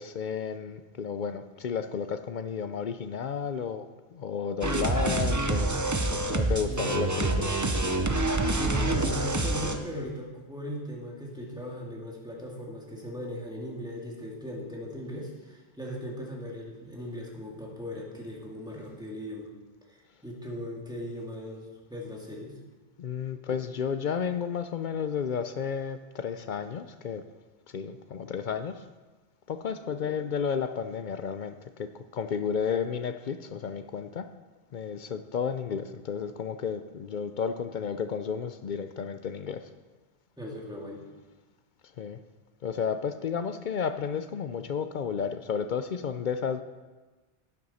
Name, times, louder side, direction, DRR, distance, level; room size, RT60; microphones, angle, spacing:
voice 1, 0.0-5.7 6.1-7.6 23.0-27.2 27.7-28.8 29.5-34.3 34.7-39.7 42.0-42.2 42.6-46.6, left 6 dB, 55° left, 10 dB, 0.6 m, -32 dB
sound 1, 4.6-9.8, right 2 dB, 20° right, 0.5 m, -27 dB
voice 2, 6.6-7.0 8.5-19.5 19.8-22.6 40.4-41.0, equal, 5° right, -2 dB, 2.0 m, -38 dB
12.0 x 9.5 x 4.2 m, 1.2 s
omnidirectional pair, 1.2 m